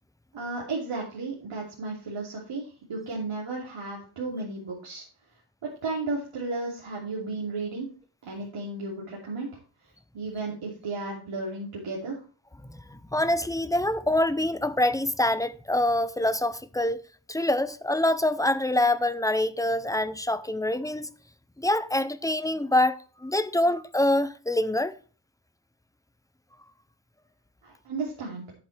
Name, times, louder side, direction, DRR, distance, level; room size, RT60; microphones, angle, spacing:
voice 1, 0.3-5.0 5.8-7.9 8.2-9.5 10.1-12.2 27.6-28.4, right 3 dB, 85° right, 2.9 m, -34 dB
voice 2, 12.9-17.0 17.3-21.1 21.6-24.9, left 1 dB, 10° left, 0.4 m, -25 dB
10.5 x 8.2 x 3.3 m
wide cardioid pair, 145°, 49 cm